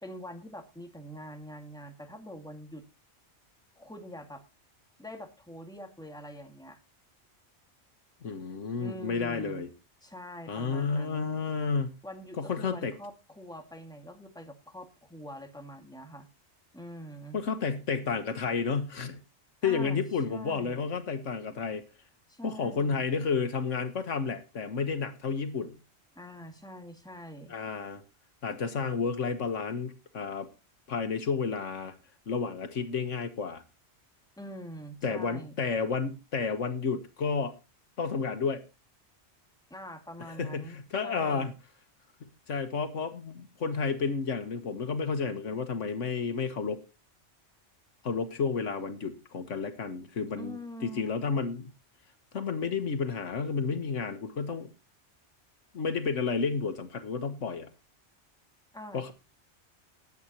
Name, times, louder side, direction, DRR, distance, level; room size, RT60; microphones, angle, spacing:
voice 1, 0.0-2.8 3.8-4.4 5.0-6.8 8.8-9.7 10.0-11.4 12.0-16.3 16.7-17.4 19.6-20.0 20.3-20.8 22.3-23.1 26.2-27.6 34.4-35.5 39.7-41.5 50.4-51.1 58.7-59.1, equal, 5° left, 4 dB, 2.0 m, -44 dB
voice 2, 8.2-9.7 10.5-11.9 12.4-12.9 17.3-19.2 19.6-21.8 22.4-25.8 27.5-28.0 28.4-30.5 30.9-31.9 32.3-33.6 35.0-37.5 38.0-38.6 40.4-41.5 42.5-46.8 48.0-51.7 52.3-54.7 55.7-57.7 58.9-59.1, left 5 dB, 85° left, 9 dB, 1.7 m, -31 dB
20.0 x 8.4 x 3.0 m, 0.29 s
omnidirectional pair, 1.2 m